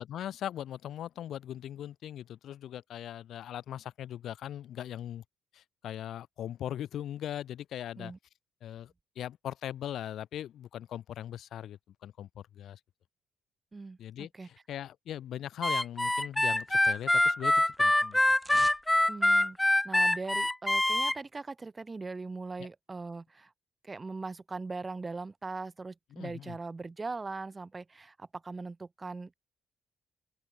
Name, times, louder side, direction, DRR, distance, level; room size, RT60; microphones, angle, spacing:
voice 1, 0.0-5.2 5.5-8.1 8.6-12.8 14.0-18.2 26.1-26.6, left 11 dB, 70° left, 4.5 m, -40 dB
voice 2, 13.7-14.5 19.1-23.5 23.8-29.3, right 3 dB, 25° right, 3.8 m, -40 dB
Harmonica, 15.6-21.2, left 1 dB, 10° left, 0.6 m, -25 dB
sound 1, 16.1-17.3 17.6-18.9 19.2-19.3, right 1 dB, 5° right, 4.9 m, -49 dB
open air
cardioid pair, 90°, 0 cm